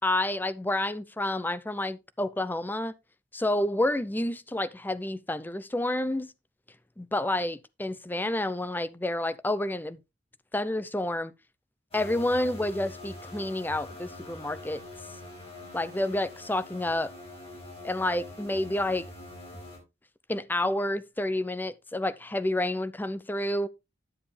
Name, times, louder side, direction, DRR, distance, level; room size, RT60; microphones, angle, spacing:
voice 1, 0.0-2.9 3.3-6.3 7.0-10.0 10.5-11.3 11.9-14.8 15.7-17.1 17.8-19.1 20.3-23.7, left 1 dB, 10° left, 0.5 m, -29 dB
sound 1, 11.9-19.8, left 1 dB, 35° left, 5.6 m, -44 dB
11.0 x 7.4 x 3.3 m
head